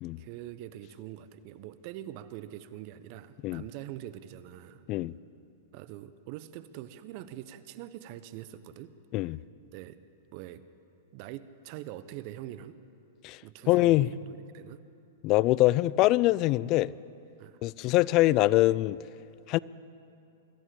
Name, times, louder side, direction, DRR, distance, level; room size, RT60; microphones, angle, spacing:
voice 1, 0.2-4.9 5.7-8.9 9.7-10.0 10.3-10.6 11.1-12.8 13.4-14.8 17.4-17.6, right 12 dB, 50° right, 1.0 m, -44 dB
voice 2, 13.7-14.1 15.2-16.9 17.6-19.0 19.5-19.6, left 17 dB, 40° left, 0.5 m, -23 dB
23.5 x 14.0 x 8.5 m
hypercardioid pair, 110°, 0 cm